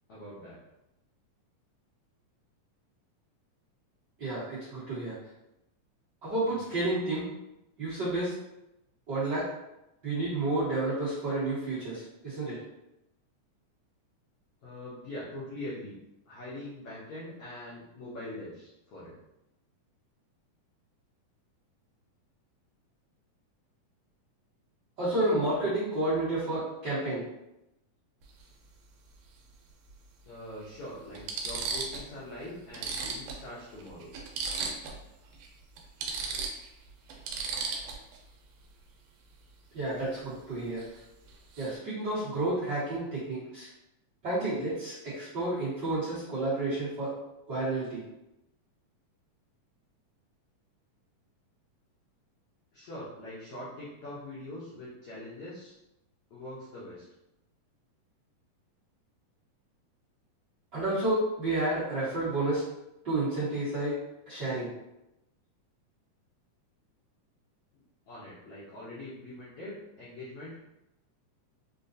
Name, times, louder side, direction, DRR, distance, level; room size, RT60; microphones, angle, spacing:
voice 1, 0.1-0.6 14.6-16.0 16.3-19.1 30.3-34.1 52.7-55.7 56.3-57.0 68.1-70.6, left 1 dB, 80° left, -8 dB, 1.3 m, -43 dB
voice 2, 4.2-5.2 6.2-7.3 7.8-8.3 9.1-9.5 10.0-12.6 25.0-27.2 39.7-40.8 41.6-43.7 44.2-47.1 47.5-48.0 60.7-62.6 63.0-64.0 64.3-64.7, right 2 dB, 50° right, -13 dB, 1.4 m, -30 dB
sound 1, 28.2-28.4 29.9-30.0 30.6-30.7 31.1-32.1 32.4-32.5 32.7-35.0 35.3-35.5 35.8-38.2 40.8-41.0 41.3-41.7, right 4 dB, 85° right, 2.2 m, -35 dB
5.2 x 2.2 x 2.6 m, 0.90 s
omnidirectional pair, 3.7 m